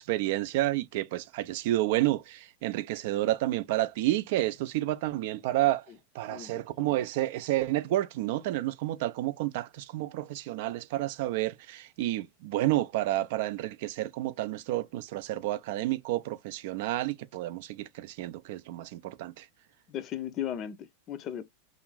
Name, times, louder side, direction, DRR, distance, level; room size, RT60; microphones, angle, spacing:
voice 1, 0.0-5.9 6.1-19.5, right 15 dB, 50° right, 0.3 m, -30 dB
voice 2, 6.3-7.0 19.9-21.4, left 10 dB, 35° left, 0.4 m, -37 dB
2.5 x 2.5 x 3.0 m
figure-of-eight pair, 90°, 0 cm